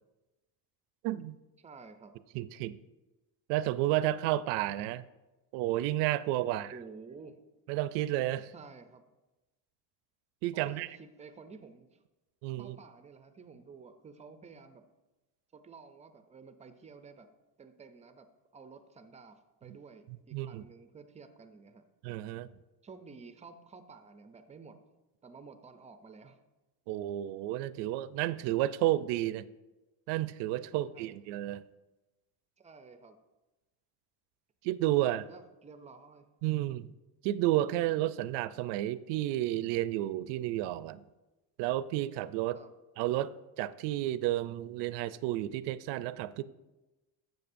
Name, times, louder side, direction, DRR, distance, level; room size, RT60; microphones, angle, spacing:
voice 1, 1.0-1.4 2.3-2.8 3.5-5.0 5.5-6.8 7.7-8.5 10.4-11.0 12.4-12.8 19.7-19.8 20.3-20.6 22.0-22.5 26.9-29.5 30.1-31.6 34.6-35.2 36.4-36.9 37.2-41.0 41.6-42.6 43.0-46.4, right 14 dB, 80° right, 16 dB, 0.5 m, -31 dB
voice 2, 1.6-2.1 6.4-7.4 8.5-9.0 10.5-12.0 12.6-14.8 15.5-17.3 17.6-18.3 18.5-21.8 22.8-24.8 25.2-26.4 30.7-31.2 32.6-33.2 34.9-36.3 42.5-42.7, right 4 dB, 20° right, 9 dB, 0.3 m, -52 dB
12.0 x 7.8 x 2.6 m, 1.1 s
cardioid pair, 150°, 42 cm